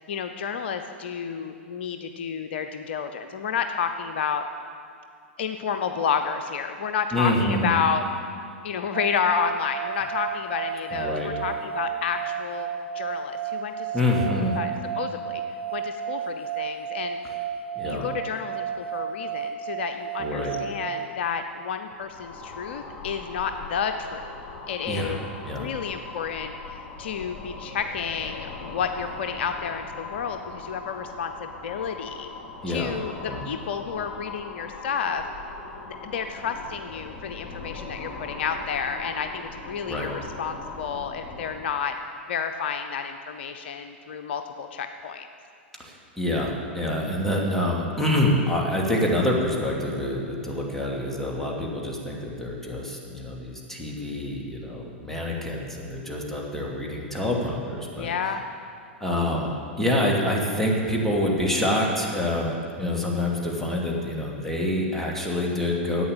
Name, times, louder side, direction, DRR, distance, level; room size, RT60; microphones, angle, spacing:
voice 1, 0.1-4.5 5.4-8.0 8.6-13.9 14.6-14.7 15.0-15.4 15.7-17.2 17.8-24.4 24.7-32.3 32.7-35.2 35.8-42.0 42.3-45.3 58.0-58.5, left 6 dB, 65° left, 7 dB, 0.7 m, -30 dB
voice 2, 7.1-7.7 10.9-11.3 13.9-14.5 17.2-17.3 17.8-18.1 20.2-20.6 24.9-25.2 25.4-25.7 32.6-32.9 33.2-33.4 39.8-40.2 45.8-58.1 59.0-59.5 59.8-66.1, left 1 dB, 5° left, -2 dB, 2.8 m, -26 dB
sound 1, 8.9-21.1, right 8 dB, 65° right, 0.9 m, -32 dB
sound 2, 21.9-41.8, left 3 dB, 40° left, 2.8 m, -40 dB
11.0 x 8.7 x 8.9 m, 2.3 s
figure-of-eight pair, 95°, 6 cm